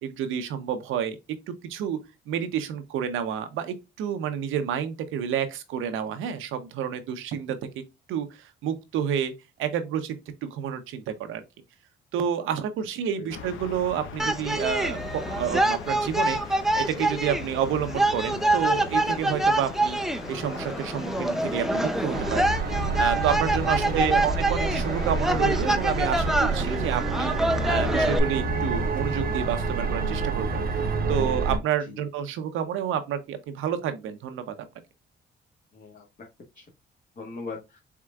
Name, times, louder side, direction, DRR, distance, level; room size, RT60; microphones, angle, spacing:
voice 1, 0.0-2.0 2.3-7.6 8.1-9.3 9.6-11.4 12.1-20.0 20.3-22.6 23.0-27.3 27.6-30.6 31.1-34.5, right 8 dB, 90° right, 0.8 m, -29 dB
sound 1, 13.3-31.0, left 6 dB, 85° left, 0.8 m, -40 dB
sound 2, 14.2-28.2, right 1 dB, ahead, 0.5 m, -26 dB
sound 3, 22.1-31.6, right 4 dB, 50° right, 0.9 m, -28 dB
voice 2, 23.8-24.2 31.9-32.0 35.7-36.3 36.5-36.6 37.1-37.8, left 4 dB, 45° left, 1.6 m, -40 dB
4.7 x 3.7 x 2.4 m
cardioid pair, 90°, 20 cm